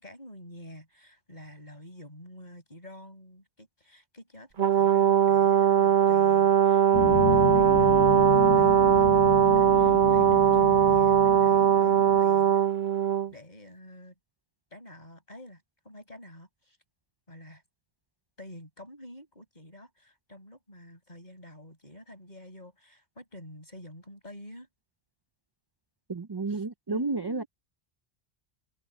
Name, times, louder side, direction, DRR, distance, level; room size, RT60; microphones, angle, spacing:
voice 1, 0.0-12.7 13.3-14.1 14.7-16.8 17.3-17.6 18.4-24.7 26.5-27.5, left 1 dB, 45° left, 6.9 m, -48 dB
Brass instrument, 4.6-13.3, right 9 dB, 50° right, 1.0 m, -20 dB
sound 1, 6.9-12.2, left 11 dB, 80° left, 1.0 m, -32 dB
voice 2, 26.1-27.4, right 3 dB, 30° right, 0.5 m, -31 dB
omnidirectional pair, 1.1 m